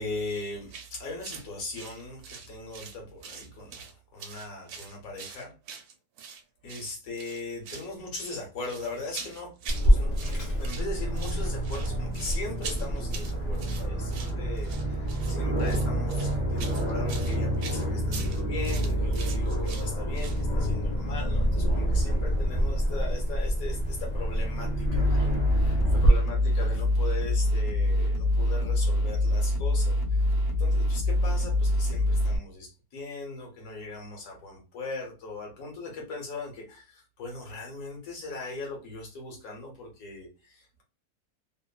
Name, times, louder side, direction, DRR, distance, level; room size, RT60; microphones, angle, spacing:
voice 1, 0.0-3.8 4.1-5.5 6.6-9.5 9.8-30.2 30.6-40.8, left 3 dB, 60° left, 0 dB, 1.5 m, -39 dB
sound 1, 0.7-0.9 1.2-1.5 1.7-3.0 3.2-3.9 4.2-6.4 6.7-6.9 7.2-7.9 8.1-9.9 10.1-10.9 11.1-20.4, right 6 dB, 70° right, 1.0 m, -43 dB
Aircraft, 9.7-26.1, equal, 35° left, 0.8 m, -27 dB
sound 2, 24.9-32.4, left 1 dB, 90° right, 0.3 m, -25 dB
3.3 x 2.0 x 2.2 m, 0.32 s
omnidirectional pair, 1.8 m